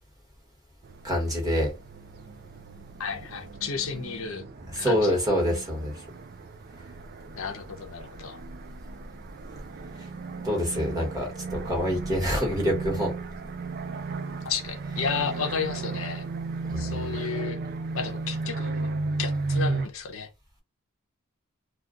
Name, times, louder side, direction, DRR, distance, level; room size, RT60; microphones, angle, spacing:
sound 1, 0.8-19.9, right 3 dB, 45° right, 0.4 m, -35 dB
voice 1, 1.0-1.7 4.7-5.9 10.4-13.1 16.7-16.8, equal, 15° right, 1.3 m, -26 dB
voice 2, 3.0-4.4 4.8-5.2 7.3-8.4 14.4-16.3 16.8-17.6 17.9-20.3, left 6 dB, 65° left, 0.6 m, -33 dB
2.3 x 2.3 x 3.7 m
head